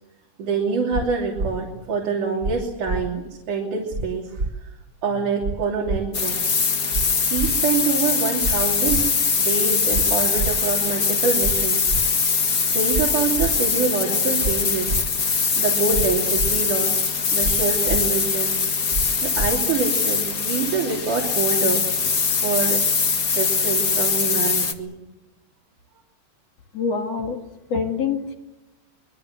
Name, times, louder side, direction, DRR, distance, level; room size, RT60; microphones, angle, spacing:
voice 1, 0.4-4.4 5.0-6.4 7.2-9.0 9.4-11.9 12.7-14.9 15.6-18.6 19.2-21.9 22.4-22.8 23.3-24.9, right 5 dB, 75° right, 0 dB, 4.6 m, -25 dB
sound 1, 0.9-1.0 1.4-1.5 2.4-2.5 2.9-3.0 3.9-4.1 4.4-4.5 5.4-5.5 5.9-6.0 6.9-7.0 7.4-7.5 8.4-8.6 8.9-9.0 9.9-10.0 10.4-10.5 11.4-11.6 11.9-12.0 12.9-13.0 13.4-13.5 14.4-14.5 14.9-15.0 15.9-16.1 16.4-16.5 17.4-17.6 17.9-18.0 18.9-19.1 19.4-19.5, right 2 dB, 30° right, 3.0 m, -26 dB
sound 2, 6.1-24.7, left 5 dB, 35° left, 1.7 m, -22 dB
voice 2, 26.7-27.4 27.7-28.3, left 5 dB, 55° left, 2 dB, 3.0 m, -25 dB
24.5 x 22.5 x 8.0 m, 0.99 s
omnidirectional pair, 3.6 m